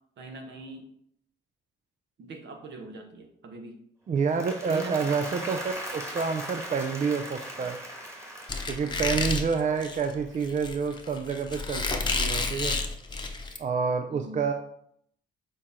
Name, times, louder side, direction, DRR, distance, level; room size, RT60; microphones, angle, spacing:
voice 1, 0.2-0.8 2.2-3.8 4.6-5.1 8.8-9.4 14.1-14.5, right 2 dB, 65° right, 4 dB, 1.4 m, -42 dB
Applause, 4.1-10.5, right 1 dB, 15° right, 1.7 m, -40 dB
voice 2, 4.1-7.8 8.7-12.8 13.6-14.5, right 5 dB, 40° right, 6 dB, 0.5 m, -28 dB
Squeak, 8.5-13.6, left 3 dB, 20° left, 0.9 m, -30 dB
6.5 x 4.3 x 3.7 m, 0.71 s
cardioid pair, 90°, 20 cm